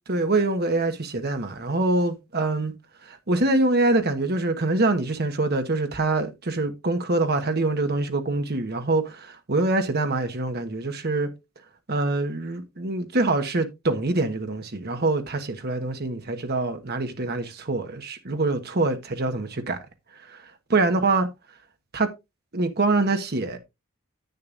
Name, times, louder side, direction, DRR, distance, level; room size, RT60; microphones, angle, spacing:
voice 1, 0.1-2.7 3.0-11.3 11.9-19.8 20.2-20.4 20.7-21.3 21.9-22.1 22.5-23.6, right 2 dB, 50° right, 1.2 m, -25 dB
10.5 x 8.6 x 2.5 m
head